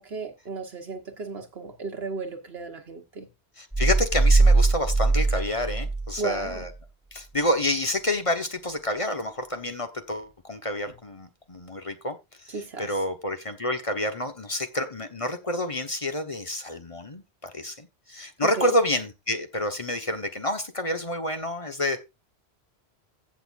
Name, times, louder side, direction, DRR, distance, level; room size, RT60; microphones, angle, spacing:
voice 1, 0.0-3.3 6.2-6.7 12.5-13.0 18.4-18.7, right 4 dB, 70° right, 1.4 m, -34 dB
voice 2, 3.6-6.7 7.1-12.2 12.4-22.0, left 1 dB, 30° left, 1.2 m, -28 dB
sound 1, 3.7-6.7, right 3 dB, 10° left, 6.7 m, -21 dB
16.0 x 6.4 x 2.5 m
omnidirectional pair, 1.1 m